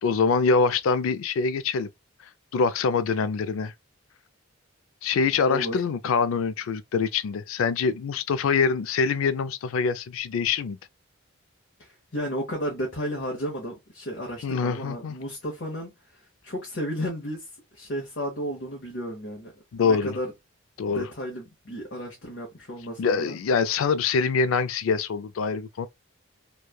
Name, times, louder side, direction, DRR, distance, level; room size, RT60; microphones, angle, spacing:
voice 1, 0.0-1.9 2.5-3.7 5.0-10.8 14.4-15.1 19.7-20.1 20.8-21.0 23.0-25.9, left 5 dB, 85° left, 0.4 m, -24 dB
voice 2, 5.5-5.8 11.8-19.5 19.8-20.3 20.9-23.4, equal, 55° left, 0.9 m, -33 dB
3.1 x 2.3 x 2.2 m
head